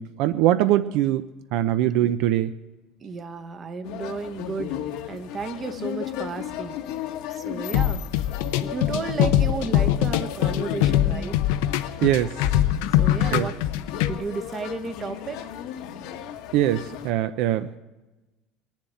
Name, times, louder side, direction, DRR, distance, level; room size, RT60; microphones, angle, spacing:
voice 1, 0.0-2.6 12.0-12.4 13.3-13.5 16.5-17.7, right 13 dB, 60° right, 11 dB, 0.5 m, -22 dB
voice 2, 3.0-4.8 5.1-6.8 7.3-8.0 8.6-11.4 13.0-15.4, right 4 dB, 25° right, 10 dB, 0.9 m, -33 dB
sound 1, 3.8-17.1, left 10 dB, 65° left, 1.1 m, -35 dB
sound 2, 7.7-14.1, left 12 dB, 90° left, 0.7 m, -22 dB
20.5 x 7.3 x 9.2 m, 1.1 s
cardioid pair, 170°, 0 cm